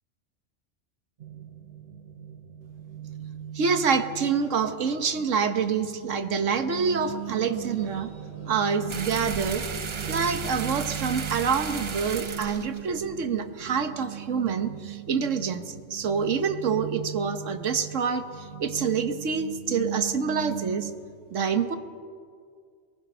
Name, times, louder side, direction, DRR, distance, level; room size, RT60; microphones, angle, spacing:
sound 1, 1.2-20.9, right 12 dB, 50° right, 1.0 m, -39 dB
voice 1, 3.5-8.1 8.5-9.6 10.1-20.9 21.3-21.8, right 6 dB, 80° right, 9 dB, 1.5 m, -27 dB
sound 2, 6.4-12.6, left 1 dB, 10° left, 7.9 m, -49 dB
sound 3, 8.9-13.8, right 5 dB, 35° right, 0.5 m, -35 dB
24.0 x 19.5 x 5.6 m, 2.2 s
omnidirectional pair, 1.3 m